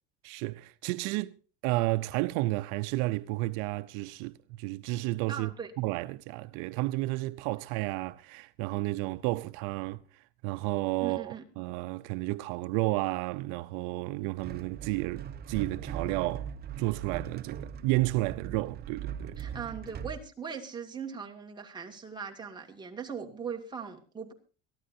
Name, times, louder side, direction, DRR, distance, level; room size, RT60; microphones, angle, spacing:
voice 1, 0.2-1.4 1.6-5.5 5.8-16.5 16.8-19.4, right 20 dB, 70° right, 0.7 m, -32 dB
voice 2, 5.3-5.7 11.0-11.4 19.4-24.3, right 6 dB, 15° right, 2.3 m, -40 dB
sound 1, 14.4-20.2, right 8 dB, 30° right, 0.9 m, -40 dB
23.0 x 14.0 x 2.7 m
cardioid pair, 145°, 32 cm